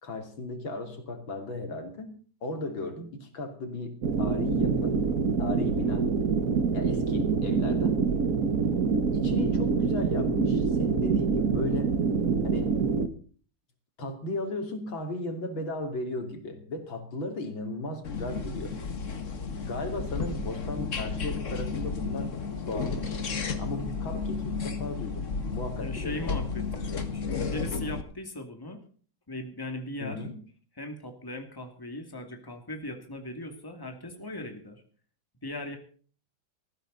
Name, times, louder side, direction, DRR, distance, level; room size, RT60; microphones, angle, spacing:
voice 1, 0.0-2.1 2.4-5.0 5.4-6.1 6.7-8.0 9.1-11.9 12.4-12.7 14.0-18.8 19.5-22.4 22.7-23.2 23.6-26.4 30.0-30.3, left 2 dB, 90° left, 5 dB, 3.6 m, -36 dB
sound 1, 4.0-13.1, right 5 dB, 50° right, 1.6 m, -26 dB
sound 2, 18.0-28.0, left 5 dB, 40° left, 1.8 m, -33 dB
voice 2, 25.8-28.8 29.3-30.2 30.8-34.8 35.4-35.8, left 1 dB, 10° left, 5 dB, 2.3 m, -38 dB
19.0 x 14.5 x 4.0 m, 0.41 s
omnidirectional pair, 2.1 m